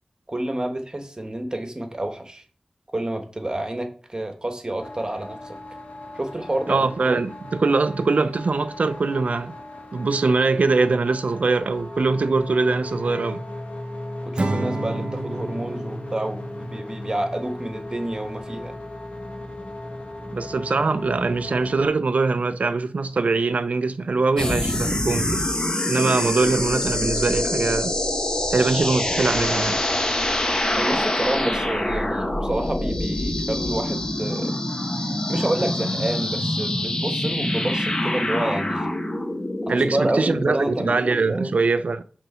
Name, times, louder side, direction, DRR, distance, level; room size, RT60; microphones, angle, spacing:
voice 1, 0.3-2.4 2.9-5.6 6.1-7.2 14.3-18.7 30.7-34.6 35.3-38.9 39.7-41.6, right 1 dB, 35° right, 1.2 m, -29 dB
sound 1, 4.8-21.9, left 1 dB, 70° left, 1.4 m, -37 dB
voice 2, 6.7-9.6 9.9-13.4 20.3-25.5 25.9-27.9 28.5-29.8 39.7-42.0, right 3 dB, 85° right, 0.5 m, -22 dB
Acoustic guitar / Strum, 14.4-17.7, right 2 dB, 55° right, 0.8 m, -31 dB
sound 2, 24.4-41.2, left 1 dB, 35° left, 1.1 m, -25 dB
6.2 x 3.9 x 5.6 m
wide cardioid pair, 75°, 2 cm